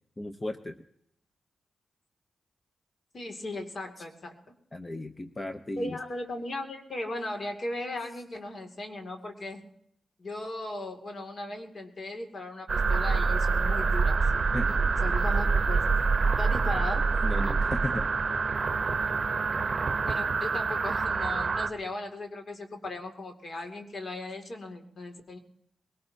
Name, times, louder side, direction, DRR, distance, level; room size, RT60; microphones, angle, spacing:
voice 1, 0.2-0.8 4.0-4.1 4.7-6.0 14.5-14.8 17.2-18.1, left 1 dB, 25° left, 8 dB, 0.9 m, -35 dB
voice 2, 3.1-4.4 5.8-9.7 10.2-14.2 15.0-15.9 16.4-17.1 20.0-25.4, left 2 dB, 50° left, 4 dB, 2.6 m, -37 dB
sound 1, 12.7-21.7, right 4 dB, 45° right, 0.9 m, -26 dB
22.0 x 18.0 x 2.9 m, 0.73 s
cardioid pair, 65°, 0 cm